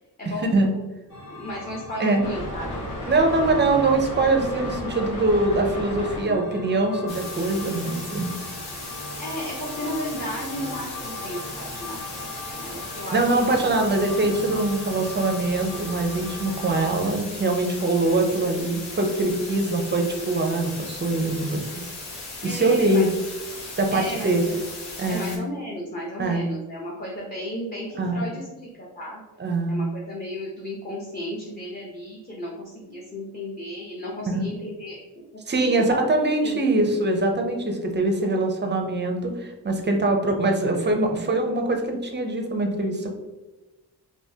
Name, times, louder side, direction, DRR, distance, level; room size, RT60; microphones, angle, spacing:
voice 1, 0.2-0.9 1.3-2.8 3.4-3.5 9.2-13.8 22.4-23.0 23.9-24.6 25.1-29.2 29.7-36.6, equal, 20° left, -5 dB, 0.6 m, -34 dB
sound 1, 1.1-17.0, left 1 dB, 60° left, 1.4 m, -36 dB
voice 2, 3.1-8.3 13.1-21.6 22.4-23.1 23.8-24.4 25.0-25.3 26.2-26.5 28.0-28.2 29.4-29.8 34.3-34.4 35.5-43.1, right 2 dB, 30° right, 3 dB, 0.4 m, -23 dB
sound 2, 7.1-25.4, left 2 dB, 85° left, 0.9 m, -37 dB
3.4 x 2.6 x 2.7 m, 1.1 s
wide cardioid pair, 125°, 40 cm